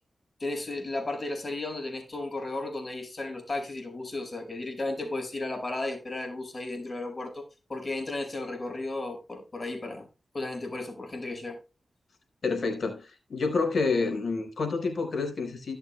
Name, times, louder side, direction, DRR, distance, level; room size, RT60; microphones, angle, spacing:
voice 1, 0.4-7.4 7.7-10.1 10.3-11.6, left 2 dB, 40° left, 4.9 m, -34 dB
voice 2, 12.4-15.8, left 4 dB, 65° left, 4.3 m, -28 dB
17.0 x 6.8 x 2.2 m
cardioid pair, 65°, 0 cm